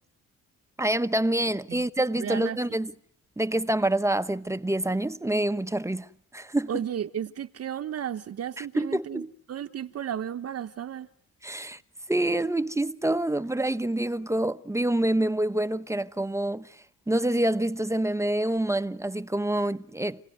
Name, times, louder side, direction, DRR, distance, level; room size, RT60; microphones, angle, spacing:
voice 1, 0.8-2.9 3.4-6.7 8.6-9.3 11.4-11.8 12.1-16.8 17.1-20.2, right 1 dB, 10° right, 1.1 m, -27 dB
voice 2, 2.2-2.6 6.7-11.1, right 9 dB, 55° right, 1.2 m, -34 dB
29.5 x 18.0 x 9.3 m
cardioid pair, 90°, 30 cm